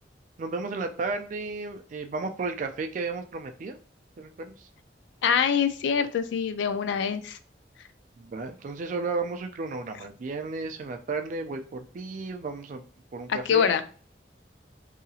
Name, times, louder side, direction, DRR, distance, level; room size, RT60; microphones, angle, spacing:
voice 1, 0.4-3.8 4.2-4.7 8.2-12.8 13.1-13.7, right 3 dB, 45° right, 7 dB, 0.3 m, -33 dB
voice 2, 5.2-7.4 13.3-13.8, left 7 dB, 80° left, 10 dB, 0.3 m, -24 dB
2.8 x 2.7 x 2.3 m, 0.40 s
head